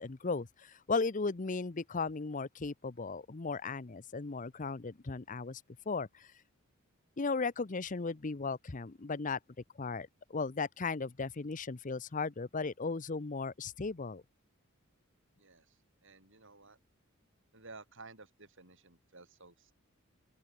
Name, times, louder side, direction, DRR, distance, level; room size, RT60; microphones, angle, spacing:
voice 1, 0.0-5.6 5.9-6.3 7.2-9.4 9.8-14.2, left 4 dB, 35° left, 0.7 m, -36 dB
voice 2, 15.4-15.8 16.0-16.8 17.5-19.7, right 3 dB, 60° right, 6.9 m, -54 dB
open air
head